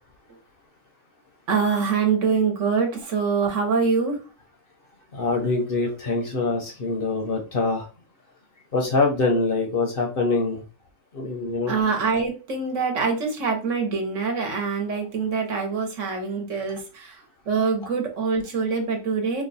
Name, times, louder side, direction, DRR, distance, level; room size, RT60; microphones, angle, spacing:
voice 1, 1.5-4.2 6.0-6.1 11.7-17.2 17.5-19.4, right 5 dB, 65° right, 3 dB, 1.2 m, -24 dB
voice 2, 5.1-7.9 8.7-10.6 11.1-11.7, left 3 dB, 50° left, 2 dB, 0.8 m, -24 dB
3.0 x 2.2 x 3.9 m, 0.33 s
omnidirectional pair, 1.4 m